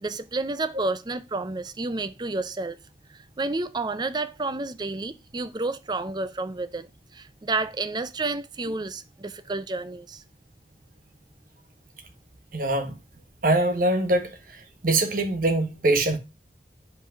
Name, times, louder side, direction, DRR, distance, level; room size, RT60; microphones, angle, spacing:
voice 1, 0.0-2.8 3.1-6.9 7.1-10.2, right 3 dB, 25° right, 0.5 m, -30 dB
voice 2, 12.5-13.0 13.4-16.2, right 2 dB, 50° right, 1.3 m, -23 dB
5.5 x 4.8 x 4.9 m
head